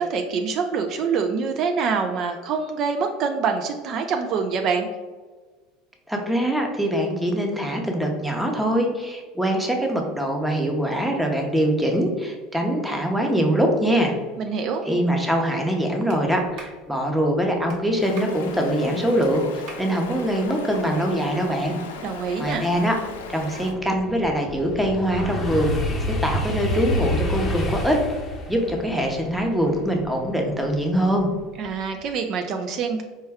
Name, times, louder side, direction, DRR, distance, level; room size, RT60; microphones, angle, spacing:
voice 1, 0.0-4.9 14.4-14.8 22.0-22.6 31.6-33.0, right 5 dB, 50° right, 5 dB, 0.3 m, -25 dB
voice 2, 6.1-14.1 14.8-21.8 22.4-22.9 23.3-25.8 26.2-28.0 28.5-31.3, equal, 5° right, 2 dB, 0.7 m, -23 dB
Clapping, 16.1-16.2 16.6-16.8 17.7-17.8 18.2-18.4 19.2-19.3 19.7-19.9, right 3 dB, 65° right, 0.9 m, -41 dB
Stream, 18.0-23.7, left 5 dB, 90° left, 0.4 m, -38 dB
sound 1, 21.6-21.7 22.2-31.2 31.6-32.0, left 1 dB, 30° left, 0.6 m, -29 dB
4.3 x 2.2 x 3.4 m, 1.4 s
hypercardioid pair, 90°, 0 cm